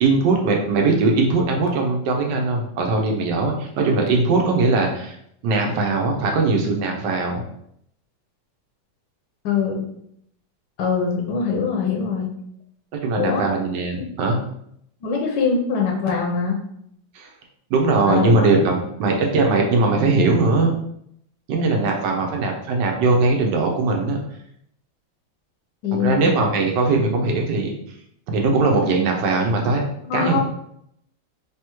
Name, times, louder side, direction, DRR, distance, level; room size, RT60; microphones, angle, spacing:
voice 1, 0.0-5.2 5.4-7.4 12.9-14.4 17.1-17.3 17.7-20.7 21.5-24.2 26.0-27.8 28.3-29.8 30.1-30.4, right 3 dB, 70° right, 1 dB, 1.3 m, -20 dB
voice 2, 9.4-9.8 10.8-12.4 13.2-13.5 14.0-14.1 15.0-16.6 18.1-18.5 25.8-26.2 30.0-30.4, left 5 dB, 70° left, 0 dB, 1.3 m, -23 dB
3.4 x 3.4 x 2.9 m, 0.72 s
omnidirectional pair, 2.1 m